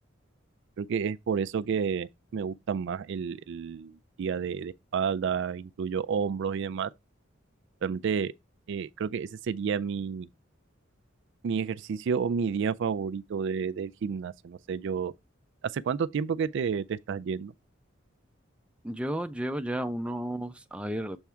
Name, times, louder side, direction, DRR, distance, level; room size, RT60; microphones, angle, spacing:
voice 1, 0.8-6.9 7.8-8.3 8.7-10.3 11.4-15.1 15.7-17.5, right 6 dB, 60° right, 0.4 m, -30 dB
voice 2, 18.8-21.2, right 1 dB, 5° right, 0.5 m, -32 dB
7.1 x 3.5 x 4.4 m
head